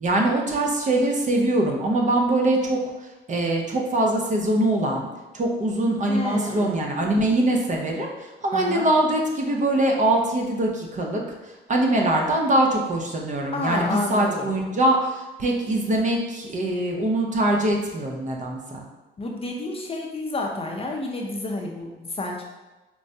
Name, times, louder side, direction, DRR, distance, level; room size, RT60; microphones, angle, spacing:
voice 1, 0.0-5.1 5.3-11.2 11.7-18.8, right 1 dB, 40° right, 0 dB, 0.6 m, -23 dB
voice 2, 6.1-6.7 8.5-8.9 13.5-14.5 19.2-22.4, left 2 dB, 30° left, 0 dB, 0.5 m, -30 dB
4.5 x 2.1 x 2.7 m, 1.1 s
cardioid pair, 90°, 20 cm